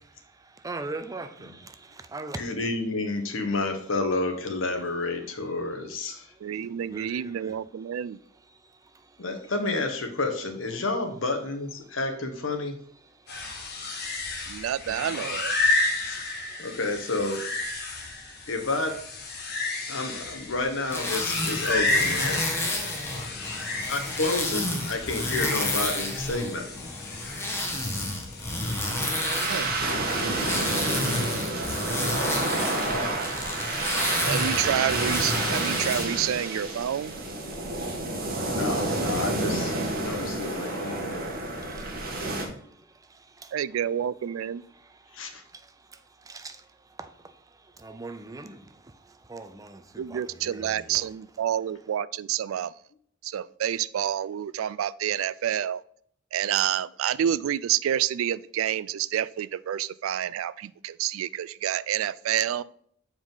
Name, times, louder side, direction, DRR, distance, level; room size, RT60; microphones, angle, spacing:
voice 1, 0.0-2.5 6.3-7.6 8.5-9.3 11.8-12.0 13.0-15.4 15.7-16.7 17.8-18.5 19.4-20.0 23.0-23.9 27.1-34.6 37.5-38.6 40.6-43.6 44.7-51.1, right 3 dB, 15° right, 0.5 m, -46 dB
voice 2, 2.3-6.3 9.2-12.8 14.0-14.1 16.0-16.2 16.6-17.4 18.5-19.0 19.9-22.4 23.9-26.9 32.8-33.1 38.4-41.3 45.1-45.4, left 2 dB, 70° left, 1.2 m, -30 dB
voice 3, 6.4-8.2 14.5-15.6 29.5-29.7 34.3-37.2 42.2-42.3 43.5-44.6 50.0-52.7 53.2-55.8 56.3-62.6, right 10 dB, 80° right, 0.3 m, -28 dB
sound 1, 13.3-28.5, left 2 dB, 55° left, 1.4 m, -31 dB
sound 2, 20.9-36.0, left 1 dB, 15° left, 1.2 m, -31 dB
sound 3, 28.6-42.5, right 2 dB, 50° right, 1.5 m, -29 dB
7.2 x 4.8 x 3.9 m
head